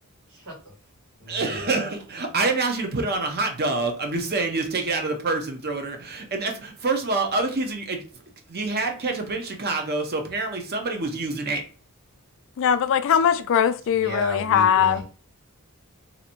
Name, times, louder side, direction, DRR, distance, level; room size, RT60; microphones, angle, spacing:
voice 1, 0.3-0.7 1.2-1.7 13.9-15.0, equal, 90° right, 2.0 m, -34 dB
voice 2, 1.3-8.0 8.5-11.6, right 3 dB, 45° right, 0.8 m, -26 dB
voice 3, 12.6-15.0, left 8 dB, 60° left, 0.3 m, -20 dB
2.8 x 2.6 x 4.3 m
head